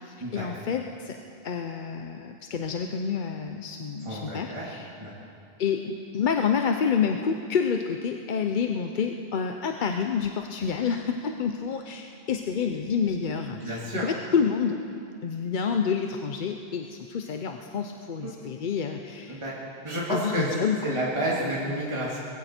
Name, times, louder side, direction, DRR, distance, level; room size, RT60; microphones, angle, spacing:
voice 1, 0.0-1.2 1.4-4.9 5.6-14.8 15.2-19.4 20.1-21.0, left 6 dB, 55° left, 5 dB, 0.7 m, -28 dB
voice 2, 4.0-4.7 5.0-5.1 13.5-14.0 18.2-18.3 19.3-19.5 19.8-20.5 20.8-22.2, right 1 dB, 30° right, -6 dB, 2.1 m, -30 dB
20.5 x 16.0 x 4.4 m, 2.5 s
omnidirectional pair, 1.1 m